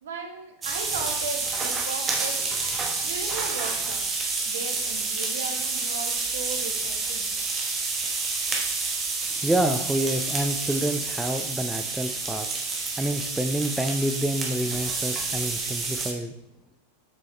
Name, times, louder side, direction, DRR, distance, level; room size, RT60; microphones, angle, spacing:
voice 1, 0.0-2.5 3.0-4.0 4.4-7.3, right 4 dB, 60° right, 3 dB, 1.3 m, -36 dB
sound 1, 0.6-16.1, right 4 dB, 20° right, 1.2 m, -29 dB
voice 2, 9.4-12.5 12.9-16.3, right 1 dB, 5° right, 6 dB, 0.5 m, -28 dB
7.4 x 6.2 x 3.2 m, 0.84 s
figure-of-eight pair, 90°, 0 cm